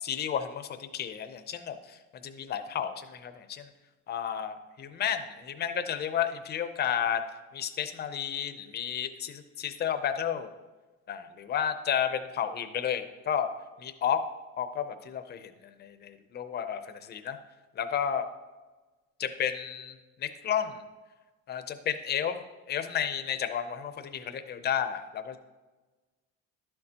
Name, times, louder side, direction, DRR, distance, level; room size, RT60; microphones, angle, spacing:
voice 1, 0.0-3.7 4.1-7.2 7.5-10.5 11.1-13.5 13.8-14.2 14.6-15.5 15.8-17.4 17.8-18.2 19.2-20.8 21.5-22.4 22.7-25.4, left 9 dB, 35° left, 9 dB, 0.5 m, -32 dB
11.5 x 6.6 x 2.8 m, 1.2 s
cardioid pair, 160°, 31 cm